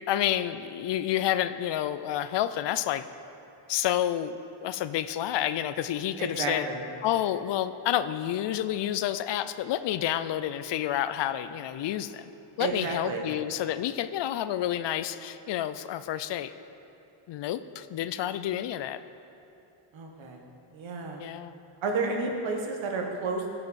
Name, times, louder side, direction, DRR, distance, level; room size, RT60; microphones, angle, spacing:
voice 1, 0.1-3.1 3.7-4.3 4.6-6.7 7.0-12.3 12.6-16.5 17.3-19.0 21.2-21.6, left 12 dB, 65° left, 12 dB, 0.5 m, -29 dB
voice 2, 6.2-6.8 12.6-13.2 19.9-20.4 20.7-21.2 21.8-23.5, right 3 dB, 75° right, 2 dB, 1.6 m, -31 dB
15.5 x 6.8 x 4.2 m, 2.9 s
cardioid pair, 110°, 47 cm